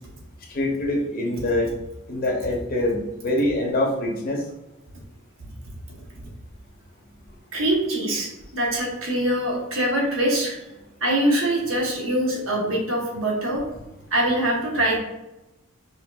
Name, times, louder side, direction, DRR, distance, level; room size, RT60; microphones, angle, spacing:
voice 1, 0.5-1.7 2.1-3.0 3.2-4.4, left 1 dB, 40° left, 0 dB, 0.7 m, -24 dB
voice 2, 7.5-10.6 11.0-13.6 14.1-15.0, right 1 dB, 70° right, -1 dB, 1.0 m, -23 dB
5.0 x 2.7 x 2.3 m, 0.97 s
head